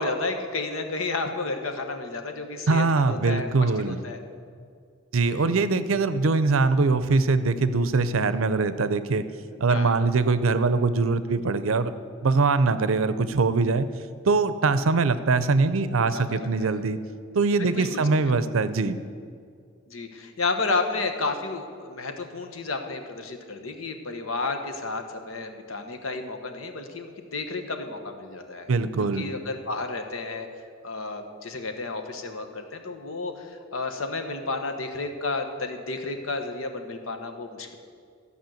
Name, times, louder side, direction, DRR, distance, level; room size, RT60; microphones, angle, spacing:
voice 1, 0.0-4.2 5.3-5.6 9.7-9.9 16.1-16.8 17.6-18.1 19.9-28.7 29.0-30.5 30.8-37.8, left 3 dB, 85° left, 6 dB, 1.1 m, -32 dB
voice 2, 2.7-4.0 5.1-9.2 9.6-13.9 14.3-17.0 17.3-19.0 28.7-29.3, right 3 dB, 85° right, 13 dB, 0.6 m, -22 dB
13.5 x 5.5 x 7.7 m, 2.2 s
head